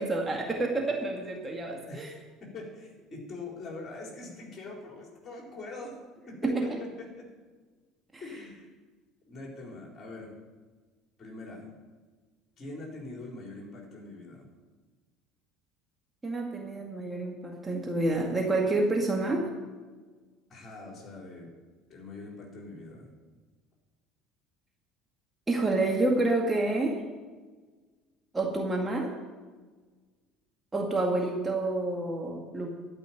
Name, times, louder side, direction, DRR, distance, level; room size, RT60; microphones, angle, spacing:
voice 1, 0.0-2.1 6.4-6.7 16.2-19.4 25.5-27.0 28.3-29.1 30.7-32.7, right 2 dB, 20° right, 0 dB, 2.0 m, -28 dB
voice 2, 2.4-5.9 6.3-7.2 8.2-8.7 9.2-10.3 11.2-11.7 12.6-14.5 20.5-21.5 21.9-23.1, left 2 dB, 40° left, -1 dB, 4.1 m, -43 dB
12.0 x 5.7 x 9.1 m, 1.4 s
hypercardioid pair, 65°, 0 cm